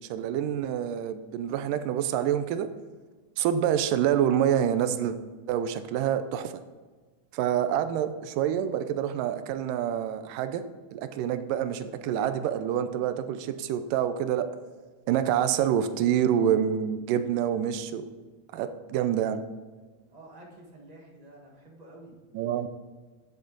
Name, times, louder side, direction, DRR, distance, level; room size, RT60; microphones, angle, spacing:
voice 1, 0.1-2.7 3.4-5.2 5.5-6.5 7.3-10.6 10.9-14.5 15.1-18.1 18.5-19.4 22.3-22.7, right 9 dB, 90° right, 10 dB, 2.3 m, -27 dB
voice 2, 20.1-22.2, right 1 dB, 35° right, -2 dB, 0.6 m, -50 dB
11.0 x 7.7 x 4.0 m, 1.4 s
omnidirectional pair, 3.7 m